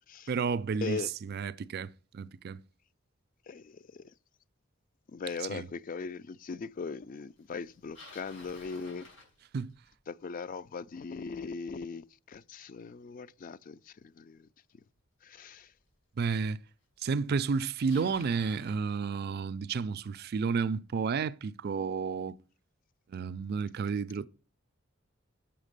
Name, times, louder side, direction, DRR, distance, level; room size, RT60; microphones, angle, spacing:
voice 1, 0.3-2.6 5.5-5.7 9.5-9.7 16.2-16.6 17.0-22.4 23.1-24.2, right 5 dB, 50° right, 0.4 m, -31 dB
voice 2, 3.5-4.0 5.1-9.1 10.1-13.8 14.2-14.5 15.2-15.7, left 5 dB, 40° left, 0.3 m, -39 dB
Bicycle, 7.6-9.9 15.0-15.1 15.9-16.0 17.1-17.2 17.4-18.8, left 3 dB, 70° left, 5.4 m, -53 dB
7.3 x 5.7 x 6.7 m
head